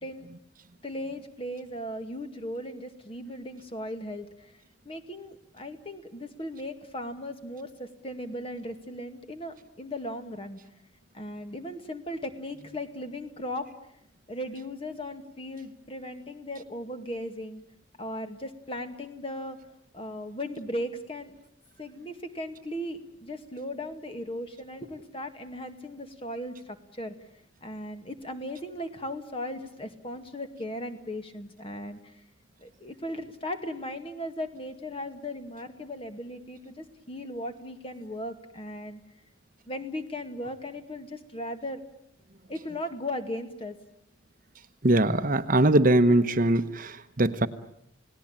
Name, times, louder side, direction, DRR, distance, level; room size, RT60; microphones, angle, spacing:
voice 1, 0.8-4.5 4.9-10.6 11.1-13.7 14.3-17.6 18.0-19.6 19.9-21.3 21.8-27.1 27.6-32.0 32.6-39.0 39.7-41.8 42.5-43.8, left 1 dB, 30° left, 8 dB, 2.2 m, -37 dB
voice 2, 44.8-47.5, right 1 dB, 45° right, 10 dB, 1.1 m, -22 dB
30.0 x 18.0 x 8.9 m, 0.76 s
head